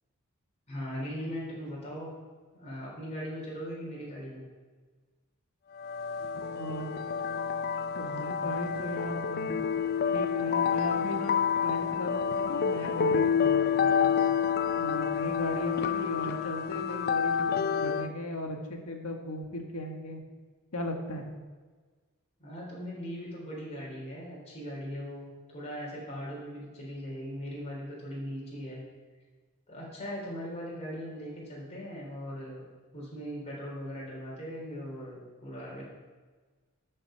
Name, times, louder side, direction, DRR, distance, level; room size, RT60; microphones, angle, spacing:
voice 1, 0.7-2.1 2.5-4.4 22.4-28.8 29.7-32.6 32.9-35.8, equal, 30° left, -5 dB, 3.9 m, -39 dB
sound 1, 5.8-18.1, left 7 dB, 45° left, 0.4 m, -28 dB
voice 2, 6.5-7.0 7.9-9.5 9.7-9.8 10.1-14.1 14.8-20.2 20.7-21.3, left 1 dB, 90° left, 3 dB, 1.7 m, -37 dB
13.5 x 6.5 x 5.8 m, 1.4 s
head